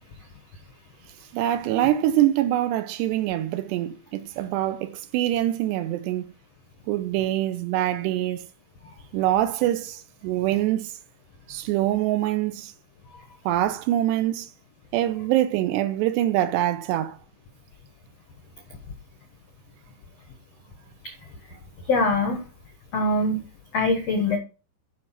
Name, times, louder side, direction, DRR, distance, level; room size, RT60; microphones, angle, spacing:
voice 1, 1.3-6.3 6.9-8.4 9.1-10.9 11.5-12.7 13.5-14.5 14.9-17.2, right 13 dB, 80° right, 2.7 m, -24 dB
voice 2, 21.9-22.4 22.9-23.4 23.7-24.4, left 2 dB, 80° left, 1.4 m, -23 dB
12.0 x 5.3 x 5.8 m
omnidirectional pair, 5.3 m